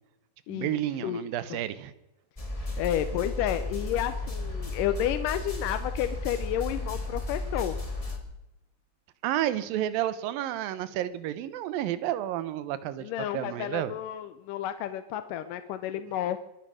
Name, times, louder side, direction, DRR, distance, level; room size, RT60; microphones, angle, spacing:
voice 1, 0.5-1.9 9.2-13.9, right 12 dB, 85° right, 14 dB, 2.7 m, -31 dB
sound 1, 2.4-8.2, left 2 dB, 15° left, 1.5 m, -34 dB
voice 2, 2.8-7.8 13.0-16.4, left 11 dB, 75° left, 10 dB, 2.2 m, -31 dB
23.0 x 9.9 x 6.3 m, 0.93 s
omnidirectional pair, 4.0 m